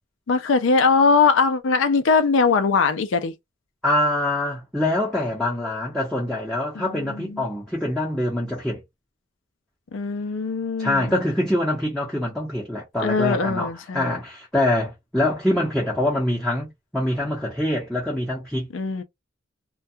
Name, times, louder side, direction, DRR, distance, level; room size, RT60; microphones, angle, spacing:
voice 1, 0.3-3.3 6.8-7.4 9.9-11.1 13.0-14.2 18.7-19.0, left 4 dB, 75° left, 0.4 m, -21 dB
voice 2, 3.8-8.8 10.8-18.7, left 1 dB, ahead, 0.8 m, -24 dB
2.2 x 2.2 x 2.7 m
head